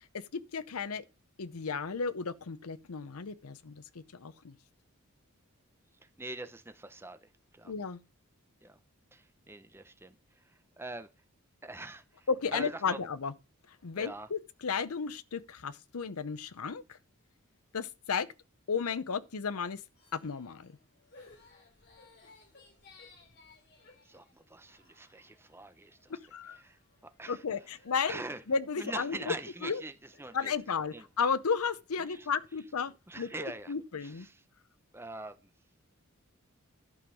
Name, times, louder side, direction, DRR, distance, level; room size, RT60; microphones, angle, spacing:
voice 1, 0.1-1.0 1.4-4.6 7.6-8.0 12.3-13.3 13.8-17.0 17.7-18.3 18.7-19.8 20.1-20.8 26.1-26.6 27.3-28.2 28.5-29.3 29.6-29.8 30.3-33.3 33.7-34.3, left 5 dB, 80° left, 0.7 m, -34 dB
voice 2, 6.0-7.7 8.6-8.8 9.1-11.1 11.6-13.0 14.0-14.3 24.0-26.2 26.5-26.8 27.2-27.4 28.0-28.4 28.8-30.5 30.9-31.1 32.0-32.3 33.1-33.7 34.0-34.4 34.9-35.5, right 2 dB, 10° right, 0.7 m, -44 dB
sound 1, 19.9-32.0, left 3 dB, 50° left, 3.3 m, -61 dB
11.5 x 5.3 x 6.3 m
head